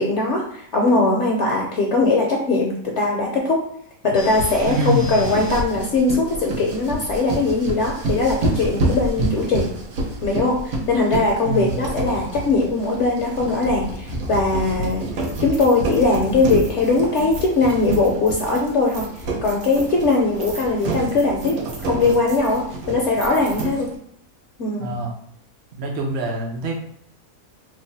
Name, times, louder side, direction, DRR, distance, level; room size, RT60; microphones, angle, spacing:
voice 1, 0.0-3.6 4.0-9.7 10.2-15.1 15.4-19.1 19.4-21.5 21.8-23.9 24.6-24.9, left 3 dB, 65° left, -1 dB, 0.8 m, -20 dB
sound 1, 4.1-24.0, right 2 dB, 80° right, 1.2 m, -28 dB
voice 2, 4.7-5.2 11.4-11.7 24.8-25.1 25.8-26.7, right 1 dB, 55° right, -1 dB, 0.8 m, -24 dB
3.1 x 2.1 x 4.0 m, 0.69 s
omnidirectional pair, 1.5 m